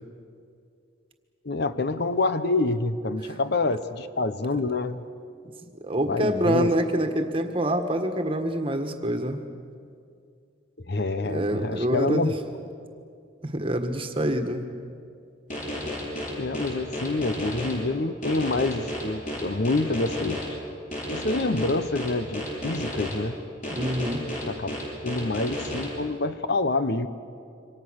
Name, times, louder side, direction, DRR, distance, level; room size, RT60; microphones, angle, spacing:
voice 1, 1.4-5.1 6.1-6.7 10.8-12.3 16.4-20.5 21.1-23.3 24.5-24.7 25.0-27.1, left 2 dB, 60° left, 11 dB, 0.9 m, -27 dB
voice 2, 5.8-9.5 11.3-12.3 13.4-14.6 23.7-24.2, right 1 dB, 30° right, 5 dB, 1.6 m, -26 dB
sound 1, 15.5-17.7 18.2-20.4 20.9-23.1 23.6-25.8, left 1 dB, 40° left, 6.1 m, -32 dB
27.0 x 25.0 x 6.5 m, 2.4 s
head